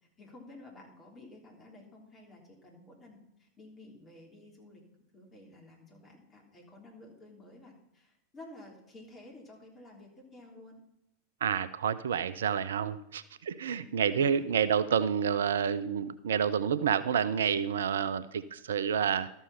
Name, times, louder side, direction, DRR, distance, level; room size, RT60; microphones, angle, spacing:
voice 1, 0.2-4.8 5.1-10.8 13.7-14.5, left 2 dB, 20° left, 0 dB, 3.4 m, -52 dB
voice 2, 11.4-19.3, right 7 dB, 65° right, 15 dB, 0.4 m, -29 dB
13.0 x 6.9 x 5.7 m, 0.84 s
figure-of-eight pair, 90°, 0 cm